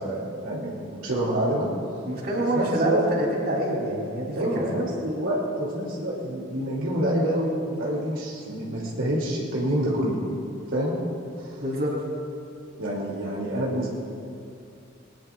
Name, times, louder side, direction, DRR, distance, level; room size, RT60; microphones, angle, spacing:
voice 1, 0.0-1.7 2.4-3.0 4.3-10.2 10.7-10.9 11.4-11.6 12.8-13.9, right 1 dB, 75° right, -4 dB, 2.6 m, -27 dB
voice 2, 2.0-4.7 11.6-11.9, right 1 dB, 50° right, -3 dB, 3.2 m, -26 dB
21.0 x 19.5 x 2.4 m, 2.5 s
head